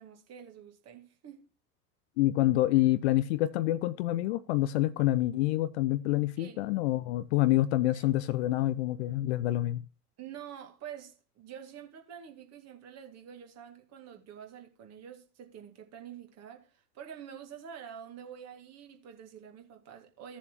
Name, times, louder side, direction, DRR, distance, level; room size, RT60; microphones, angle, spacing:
voice 1, 0.0-1.4 6.4-6.6 7.9-8.1 10.2-20.4, right 8 dB, 30° right, 2.1 m, -47 dB
voice 2, 2.2-9.8, left 15 dB, 45° left, 0.6 m, -27 dB
15.5 x 7.1 x 2.9 m
figure-of-eight pair, 85°, 47 cm